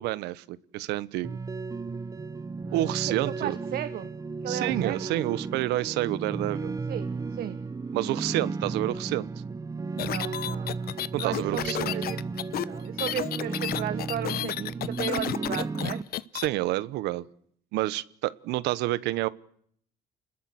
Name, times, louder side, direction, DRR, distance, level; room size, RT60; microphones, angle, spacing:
voice 1, 0.0-1.4 2.7-3.6 4.5-6.8 7.9-9.3 11.1-11.9 16.3-17.2 17.7-19.3, right 16 dB, 90° right, 18 dB, 1.1 m, -29 dB
sound 1, 1.2-16.0, right 4 dB, 20° right, 1.1 m, -34 dB
voice 2, 3.2-4.1 4.4-5.1 6.9-7.6 9.9-12.2 12.6-16.0, right 11 dB, 65° right, 10 dB, 1.6 m, -35 dB
sound 2, 10.0-16.5, left 12 dB, 65° left, 1.1 m, -32 dB
29.5 x 20.5 x 7.9 m, 0.66 s
cardioid pair, 110°, 17 cm